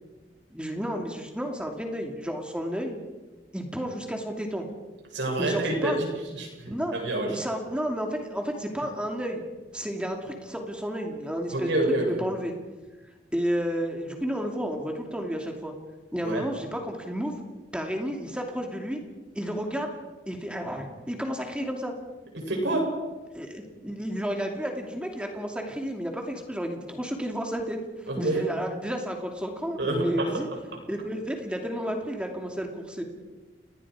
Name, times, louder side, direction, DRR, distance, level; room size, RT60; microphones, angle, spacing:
voice 1, 0.5-3.0 3.5-4.7 5.4-6.0 6.7-6.9 7.3-9.4 9.7-12.5 13.3-15.7 16.1-17.4 17.7-19.0 19.3-19.9 20.3-21.9 23.3-30.5 30.9-33.0, equal, 5° right, 2 dB, 2.5 m, -31 dB
voice 2, 5.1-6.1 6.3-7.3 11.5-12.2 16.2-16.4 22.3-22.9 28.1-28.4 29.8-30.4, right 2 dB, 85° right, -1 dB, 7.8 m, -27 dB
30.0 x 20.0 x 4.9 m, 1.2 s
head